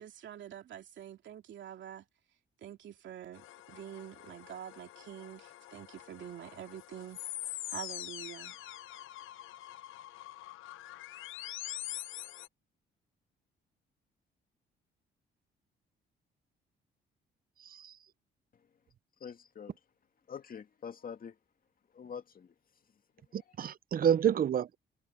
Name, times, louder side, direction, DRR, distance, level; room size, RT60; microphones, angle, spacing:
voice 1, 0.0-2.1 2.6-7.2 7.7-8.6, right 10 dB, 70° right, 2.8 m, -46 dB
sound 1, 3.3-12.5, left 14 dB, 85° left, 1.0 m, -45 dB
voice 2, 19.2-19.8 20.3-21.4 21.9-22.5 23.3-23.4, left 7 dB, 45° left, 2.2 m, -45 dB
voice 3, 23.3-24.8, right 8 dB, 50° right, 0.7 m, -29 dB
cardioid pair, 90°, 20 cm